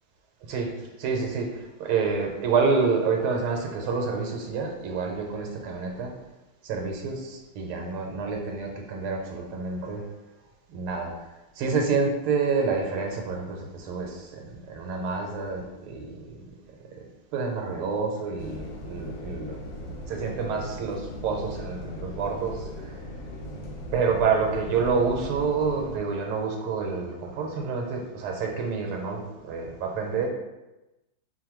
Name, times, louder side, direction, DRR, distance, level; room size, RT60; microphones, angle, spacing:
voice 1, 0.5-6.1 6.6-10.1 10.7-11.1 11.6-16.4 16.9-23.0 23.9-30.3, right 4 dB, 85° right, 2 dB, 1.6 m, -28 dB
sound 1, 18.4-26.0, left 1 dB, 75° left, 1.3 m, -39 dB
5.2 x 2.1 x 3.0 m, 1.0 s
omnidirectional pair, 2.4 m